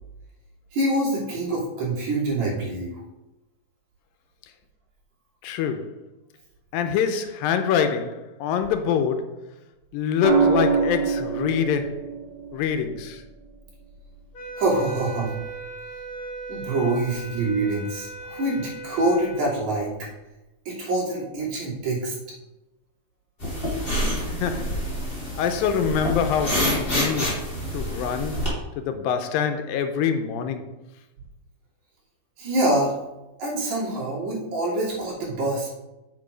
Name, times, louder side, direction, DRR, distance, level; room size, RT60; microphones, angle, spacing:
voice 1, 0.7-3.0 14.6-15.3 16.5-19.9 20.7-22.1 32.4-33.0 33.4-35.7, right 2 dB, 55° right, 3.7 m, -25 dB
voice 2, 5.4-6.0 6.7-9.4 9.9-12.1 12.5-13.2 24.3-24.9 25.4-27.5 27.7-30.7, left 7 dB, 85° left, 2.4 m, -25 dB
sound 1, 10.2-14.4 16.1-16.4, right 5 dB, 35° right, 2.4 m, -26 dB
sound 2, 14.3-19.5, right 2 dB, 65° left, 1.3 m, -38 dB
sound 3, 23.4-28.5, equal, 15° left, 2.7 m, -27 dB
7.4 x 5.9 x 5.0 m
omnidirectional pair, 4.1 m